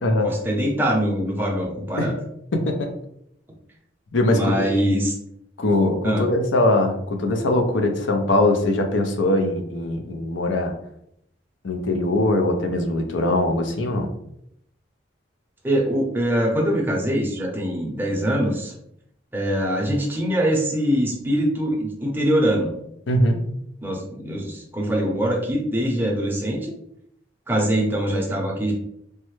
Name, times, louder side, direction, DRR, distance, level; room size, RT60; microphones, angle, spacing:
voice 1, 0.2-2.1 4.3-5.1 6.0-6.3 15.6-18.7 19.3-22.7 23.8-26.7 27.5-28.7, equal, 10° right, -1 dB, 0.6 m, -23 dB
voice 2, 2.5-2.9 4.1-4.7 5.6-10.7 11.6-14.1 23.1-23.4, left 1 dB, 80° left, 4 dB, 0.6 m, -21 dB
3.3 x 2.1 x 3.1 m, 0.73 s
head